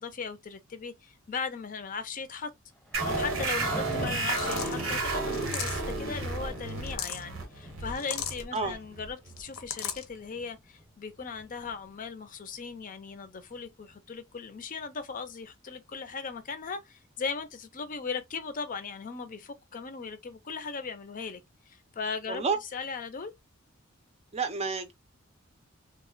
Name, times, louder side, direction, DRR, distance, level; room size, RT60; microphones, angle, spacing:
voice 1, 0.0-2.5 3.0-21.4 21.7-22.4 22.7-23.3, left 5 dB, 40° left, 0.5 m, -38 dB
Thunder, 2.8-12.2 12.5-12.7 13.4-13.6 14.6-14.7, equal, 5° left, 0.8 m, -43 dB
sound 1, 2.9-10.1, right 3 dB, 90° right, 1.0 m, -33 dB
sound 2, 4.3-4.8 5.3-5.9 6.7-7.2 8.0-8.4 9.4-10.0, left 9 dB, 85° left, 0.7 m, -36 dB
voice 2, 22.3-22.6 24.3-24.9, right 4 dB, 30° right, 0.5 m, -29 dB
3.1 x 2.1 x 3.7 m
head